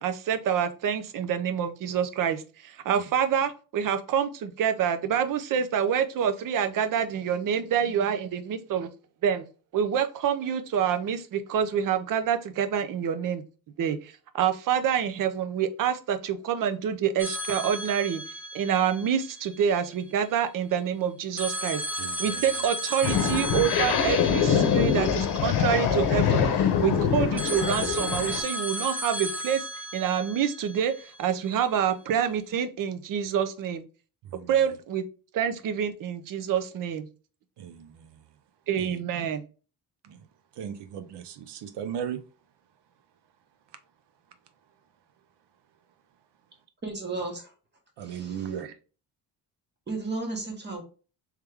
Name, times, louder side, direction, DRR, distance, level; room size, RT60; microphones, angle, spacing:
voice 1, 0.0-8.9 9.2-9.5 9.7-13.4 13.8-18.2 18.5-21.8 22.2-29.6 29.9-33.8 34.5-35.0 35.3-37.1 38.7-39.4, right 8 dB, 55° right, 0.5 m, -27 dB
sound 1, 17.2-20.1 21.4-26.3 27.4-31.6, equal, 5° right, 0.4 m, -35 dB
voice 2, 22.0-22.4 34.3-34.5 37.6-38.1 38.8-39.0 40.1-40.2 40.6-42.2 48.0-48.7, right 8 dB, 85° right, 0.7 m, -37 dB
sound 2, 23.0-28.4, left 7 dB, 70° left, 0.8 m, -24 dB
voice 3, 46.8-47.5 48.0-48.6 49.9-50.8, right 3 dB, 25° right, 1.1 m, -34 dB
3.5 x 3.2 x 3.2 m
cardioid pair, 175°, 40 cm